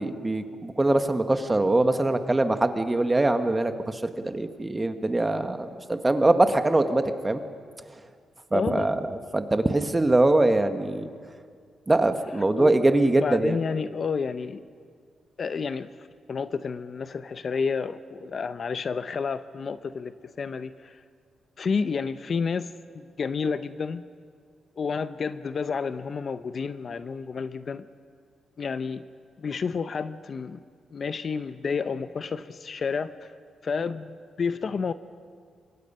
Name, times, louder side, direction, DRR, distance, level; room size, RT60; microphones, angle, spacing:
voice 1, 0.0-7.4 8.5-11.0 11.9-13.6, right 2 dB, 15° right, 8 dB, 1.3 m, -23 dB
voice 2, 8.5-8.9 12.6-12.8 13.0-14.6 15.4-15.9 16.3-20.9 21.6-24.0 24.8-27.9 28.6-29.0 29.4-30.6 30.9-33.3 33.6-34.9, left 5 dB, 45° left, 12 dB, 0.7 m, -30 dB
28.5 x 24.0 x 5.5 m, 2.1 s
cardioid pair, 115°, 0 cm